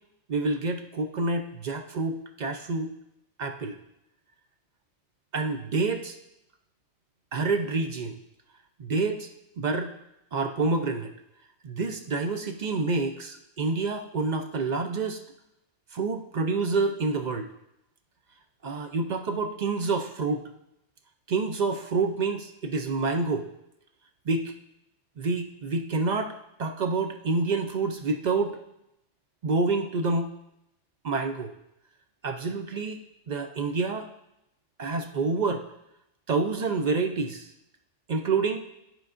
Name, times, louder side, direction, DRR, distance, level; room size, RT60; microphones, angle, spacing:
voice 1, 0.3-2.9 3.4-3.8 5.3-6.2 7.3-8.2 8.8-9.3 9.6-9.9 10.3-11.1 11.6-15.2 15.9-17.5 18.6-20.4 21.3-23.5 24.3-24.5 25.2-28.6 29.4-30.3 31.0-31.5 32.2-33.0 33.3-34.1 34.8-35.6 36.3-37.5 38.1-38.6, right 3 dB, 55° right, 6 dB, 0.5 m, -28 dB
13.0 x 4.5 x 2.5 m, 0.83 s
omnidirectional pair, 1.2 m